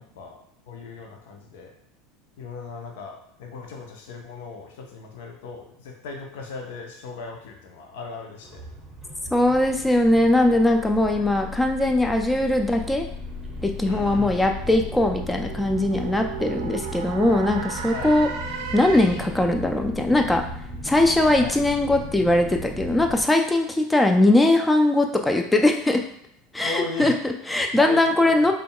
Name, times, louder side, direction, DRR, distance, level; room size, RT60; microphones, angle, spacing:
voice 1, 0.7-1.7 2.4-8.6 11.1-11.3 13.8-14.4 17.9-18.1 21.4-21.6 26.6-27.1 27.7-28.5, left 4 dB, 60° left, 2 dB, 0.6 m, -37 dB
sound 1, 8.4-23.2, left 1 dB, 10° right, 0.8 m, -36 dB
voice 2, 9.3-13.0 13.6-18.3 18.7-20.4 20.8-26.0 26.5-28.5, left 1 dB, 10° left, 4 dB, 0.4 m, -20 dB
sound 2, 13.4-19.5, right 7 dB, 60° right, 0.5 m, -36 dB
5.1 x 2.3 x 2.2 m, 0.74 s
figure-of-eight pair, 75°, 0 cm